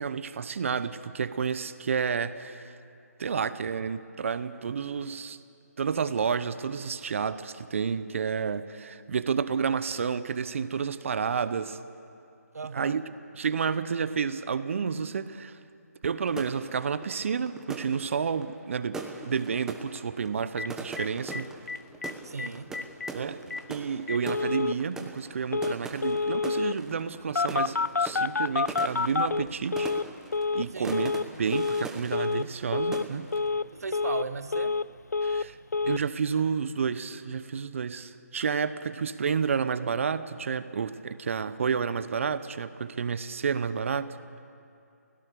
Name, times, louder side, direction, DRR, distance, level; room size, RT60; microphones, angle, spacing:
voice 1, 0.0-2.8 3.2-5.4 5.8-11.8 12.7-13.0 13.3-15.6 16.0-21.5 23.1-29.9 30.5-31.1 31.4-33.3 35.2-35.6 35.8-44.2, right 6 dB, 50° right, 13 dB, 0.9 m, -30 dB
voice 2, 12.5-13.0 22.2-22.7 30.7-31.4 33.7-34.8, right 4 dB, 65° right, 12 dB, 1.2 m, -37 dB
sound 1, 16.3-32.7 32.9-33.5, right 3 dB, 5° right, 1.2 m, -42 dB
Telephone, 20.6-20.7 21.0-21.1 21.3-21.4 21.7-22.1 22.4-22.5 22.7-23.1 23.5-23.6 24.1-24.8 25.5-25.8 26.0-26.8 27.4-30.1 30.3-30.7 30.9-31.3 31.5-31.9 32.1-32.5 32.7-33.1 33.3-33.7 33.9-34.9 35.1-35.5 35.7-36.0, left 4 dB, 85° left, 0.4 m, -28 dB
28.5 x 16.5 x 6.9 m, 2.6 s
figure-of-eight pair, 150°, 9 cm